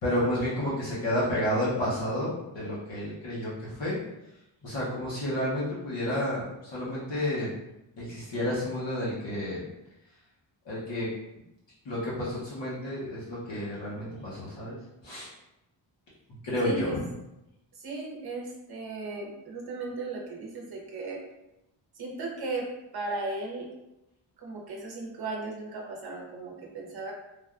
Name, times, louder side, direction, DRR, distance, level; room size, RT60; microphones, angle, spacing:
voice 1, 0.0-4.0 4.6-7.5 8.0-9.6 10.6-11.1 11.8-14.8 15.0-15.3 16.4-17.0, left 1 dB, 60° left, -8 dB, 0.9 m, -30 dB
voice 2, 16.6-17.0 17.8-21.2 22.0-22.7 22.9-23.7 24.4-27.1, right 3 dB, 50° right, -1 dB, 0.7 m, -36 dB
3.3 x 2.2 x 2.3 m, 0.89 s
wide cardioid pair, 175°, 49 cm